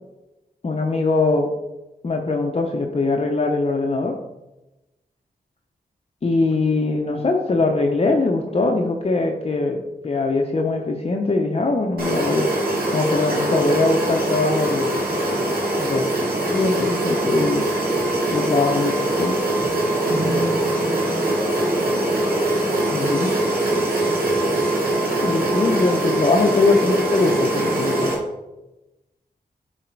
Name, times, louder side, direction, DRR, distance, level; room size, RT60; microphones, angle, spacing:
voice 1, 0.6-1.5 2.0-4.2 6.2-12.5 12.9-15.1 15.8-17.7 18.3-19.4 22.9-23.3 25.2-28.1, left 3 dB, 40° left, 1 dB, 0.8 m, -21 dB
sound 1, 12.0-28.1, right 1 dB, 70° right, 2.1 m, -22 dB
voice 2, 20.2-22.3 22.6-22.9 24.4-25.1 26.2-26.3, equal, ahead, 1 dB, 2.2 m, -34 dB
8.9 x 4.2 x 4.6 m, 0.99 s
wide cardioid pair, 95°, 16 cm